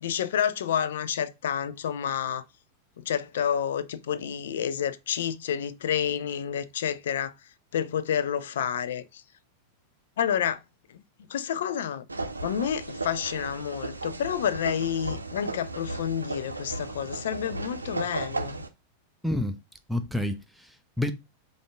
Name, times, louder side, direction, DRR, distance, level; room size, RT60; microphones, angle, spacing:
voice 1, 0.0-2.4 3.0-7.3 7.7-9.2 10.2-10.6 10.9-11.0 11.3-12.1 12.4-18.6, left 9 dB, 60° left, 0.4 m, -29 dB
sound 1, 12.1-18.7, right 2 dB, 80° right, 0.6 m, -35 dB
voice 2, 19.2-19.6 19.9-21.1, left 1 dB, ahead, 0.5 m, -29 dB
5.1 x 2.5 x 3.3 m
figure-of-eight pair, 90°, 0 cm